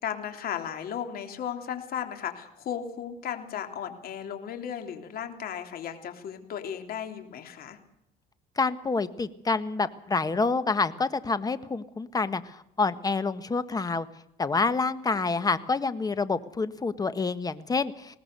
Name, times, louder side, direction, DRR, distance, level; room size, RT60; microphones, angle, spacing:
voice 1, 0.0-7.8 15.1-15.2, left 9 dB, 60° left, 6 dB, 3.3 m, -35 dB
voice 2, 8.6-14.1 14.4-18.2, left 4 dB, 20° left, 12 dB, 1.5 m, -27 dB
21.0 x 19.0 x 6.8 m, 0.78 s
cardioid pair, 110°, 17 cm